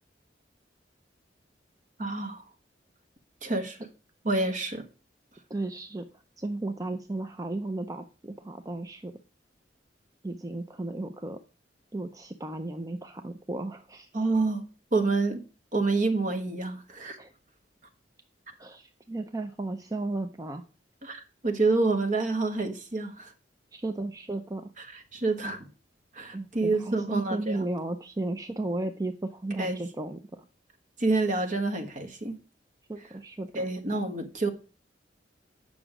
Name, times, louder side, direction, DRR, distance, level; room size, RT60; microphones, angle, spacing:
voice 1, 2.0-2.4 3.4-3.8 4.2-4.8 14.1-15.4 15.7-17.2 21.0-23.3 25.1-25.6 26.1-27.6 29.6-29.8 31.0-32.4 33.5-34.5, right 3 dB, 45° right, 1.3 m, -28 dB
voice 2, 5.5-6.0 6.4-9.1 10.2-11.4 11.9-14.1 17.2-17.3 18.6-20.6 23.7-24.7 26.3-30.5 32.9-33.7, right 2 dB, 20° right, 0.5 m, -34 dB
9.0 x 6.1 x 4.9 m
head